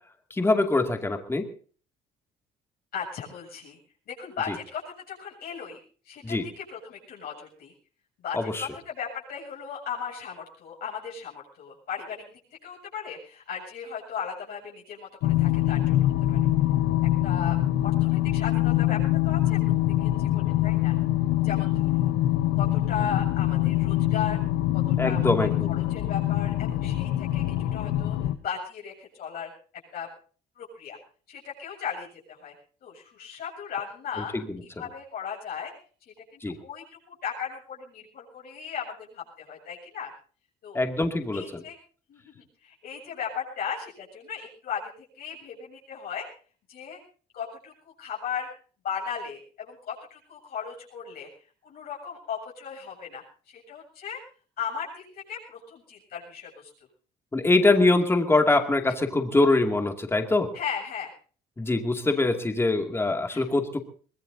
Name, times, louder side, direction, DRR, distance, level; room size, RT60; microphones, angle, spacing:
voice 1, 0.3-1.5 4.5-4.6 6.2-6.5 8.3-8.7 25.0-25.8 34.3-34.6 36.4-36.6 40.7-41.6 57.3-60.5 61.6-63.8, left 2 dB, 15° left, 5 dB, 2.4 m, -23 dB
voice 2, 2.9-3.8 4.1-4.8 5.1-5.8 6.0-7.7 8.2-12.2 12.6-16.4 17.2-17.6 17.8-19.0 19.2-19.6 20.0-21.0 21.4-22.1 22.5-24.4 24.7-28.2 28.4-29.5 29.9-30.1 30.6-31.0 31.3-32.5 32.8-34.4 34.7-35.7 36.3-40.1 40.6-40.8 41.3-41.8 42.1-44.8 45.2-46.3 46.7-47.0 47.3-48.5 48.8-51.3 51.6-54.2 54.6-56.7 60.5-61.1 63.3-63.4, left 7 dB, 65° left, -3 dB, 7.7 m, -36 dB
sound 1, 15.2-28.4, left 14 dB, 90° left, 1.0 m, -24 dB
23.5 x 20.5 x 2.8 m, 0.41 s
cardioid pair, 110°, 17 cm